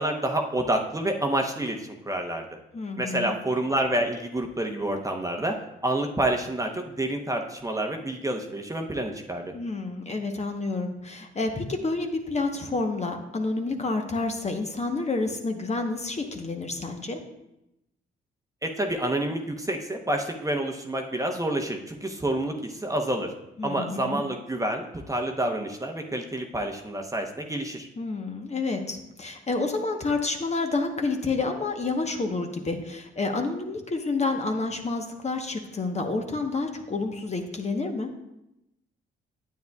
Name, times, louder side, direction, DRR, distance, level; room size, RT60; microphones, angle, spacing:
voice 1, 0.0-2.5 3.0-5.6 5.8-9.5 18.6-23.3 23.6-27.9, right 1 dB, 15° right, 3 dB, 0.9 m, -28 dB
voice 2, 2.7-3.3 9.5-17.2 23.6-24.2 28.0-38.1, left 3 dB, 35° left, 4 dB, 1.0 m, -29 dB
9.4 x 8.0 x 2.3 m, 0.88 s
supercardioid pair, 60°, 21 cm